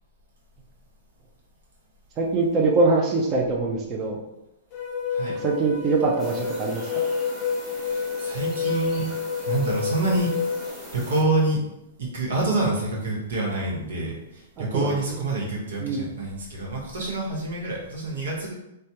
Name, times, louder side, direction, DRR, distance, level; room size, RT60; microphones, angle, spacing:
voice 1, 2.2-4.2 5.4-7.0 14.6-14.9 15.8-16.1, right 3 dB, 25° right, -2 dB, 0.4 m, -23 dB
sound 1, 4.7-10.7, left 6 dB, 30° left, 0.6 m, -29 dB
sound 2, 6.2-11.2, equal, 5° right, 1.0 m, -41 dB
voice 2, 7.8-9.1 9.4-10.3 10.9-11.6 12.0-18.5, right 2 dB, 85° right, -3 dB, 1.0 m, -27 dB
3.2 x 2.2 x 2.8 m, 0.88 s
hypercardioid pair, 145°, 0 cm